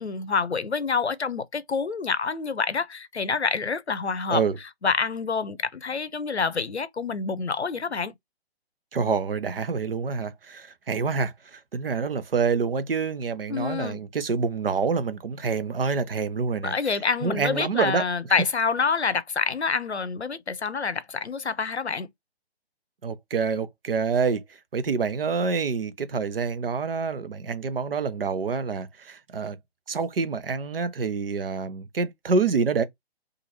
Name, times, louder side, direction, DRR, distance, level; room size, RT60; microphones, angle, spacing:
voice 1, 0.0-4.4 4.8-8.1 13.5-14.0 16.6-22.1, left 5 dB, 85° left, 0.6 m, -27 dB
voice 2, 8.9-16.7 17.2-18.0 23.0-24.4 24.7-29.6 29.9-32.8, right 5 dB, 60° right, 0.7 m, -27 dB
2.8 x 2.5 x 2.8 m
figure-of-eight pair, 135°, 32 cm